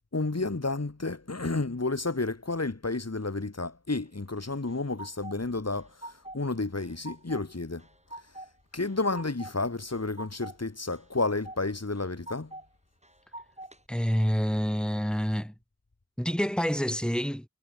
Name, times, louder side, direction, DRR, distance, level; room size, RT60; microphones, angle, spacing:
voice 1, 0.1-7.9 8.7-12.5, left 3 dB, 55° left, 2.4 m, -31 dB
sound 1, 4.4-5.4 5.7-6.5 6.8-7.4 7.8-8.5 8.8-9.5 9.9-10.6 10.9-11.6 12.0-12.7 13.0-13.8, right 1 dB, 20° right, 2.4 m, -44 dB
voice 2, 13.9-15.5 16.2-17.5, equal, 5° left, 4.0 m, -27 dB
wide cardioid pair, 40°, 31 cm